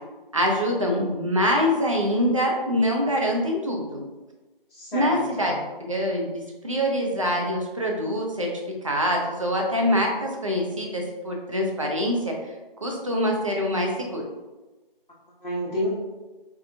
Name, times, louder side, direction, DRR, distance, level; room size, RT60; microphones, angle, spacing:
voice 1, 0.3-4.0 4.9-8.5 8.8-12.3 12.8-14.2, equal, 35° right, 0 dB, 0.5 m, -24 dB
voice 2, 4.7-5.6 15.4-15.9, equal, 55° left, -10 dB, 1.0 m, -30 dB
4.3 x 2.2 x 2.6 m, 1.2 s
figure-of-eight pair, 165°, 29 cm